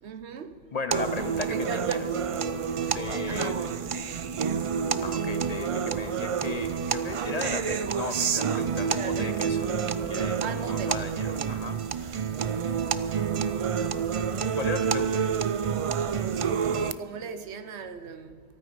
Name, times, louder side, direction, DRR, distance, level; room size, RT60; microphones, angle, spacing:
voice 1, 0.0-0.6 1.5-2.1 3.3-3.6 8.9-9.5 10.4-11.1 16.7-18.4, right 6 dB, 85° right, 1.1 m, -37 dB
voice 2, 0.7-2.1 2.9-3.7 5.0-9.7 10.1-11.8 14.5-15.2, left 4 dB, 40° left, 0.7 m, -36 dB
sound 1, 0.9-16.9, right 7 dB, 55° right, 0.3 m, -28 dB
14.0 x 13.0 x 5.2 m
omnidirectional pair, 1.1 m